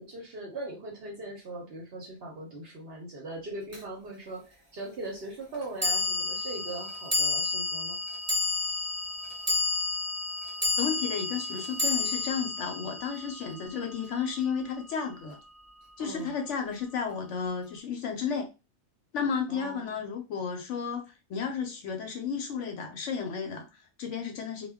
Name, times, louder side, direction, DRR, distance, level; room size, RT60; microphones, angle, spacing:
voice 1, 0.0-8.0 16.0-16.4 19.5-20.0, right 2 dB, 55° right, 0 dB, 0.7 m, -40 dB
sound 1, 3.7-3.8 5.8-14.2, left 3 dB, 20° right, 0.4 m, -31 dB
voice 2, 10.8-15.4 16.0-18.5 19.1-24.7, left 6 dB, 65° left, 4 dB, 0.8 m, -33 dB
2.2 x 2.1 x 3.4 m, 0.28 s
omnidirectional pair, 1.5 m